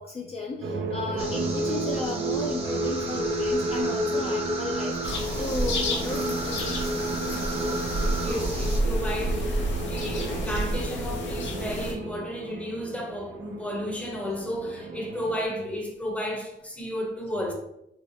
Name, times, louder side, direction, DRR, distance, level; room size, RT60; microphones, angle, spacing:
voice 1, 0.0-6.9, left 3 dB, 30° left, 0.5 m, -34 dB
sound 1, 0.6-15.4, right 1 dB, 70° right, 0.6 m, -32 dB
sound 2, 1.2-8.8, right 3 dB, 30° right, 0.8 m, -36 dB
sound 3, 5.0-11.9, equal, 70° left, 0.8 m, -29 dB
voice 2, 7.9-17.5, equal, 5° left, 0.8 m, -33 dB
3.9 x 2.0 x 3.1 m
cardioid pair, 90°, 20 cm